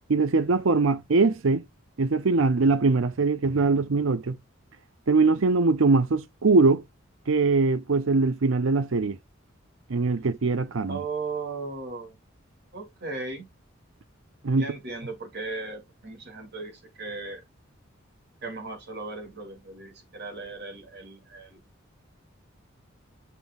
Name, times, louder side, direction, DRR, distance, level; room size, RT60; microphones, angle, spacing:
voice 1, 0.1-1.6 2.0-4.4 5.1-6.8 7.3-9.2 9.9-11.0 14.4-14.7, right 3 dB, 75° right, 0.6 m, -22 dB
voice 2, 10.9-12.2 12.7-13.4 14.5-17.4 18.4-21.6, right 3 dB, 55° right, 2.4 m, -37 dB
8.2 x 5.4 x 2.3 m
head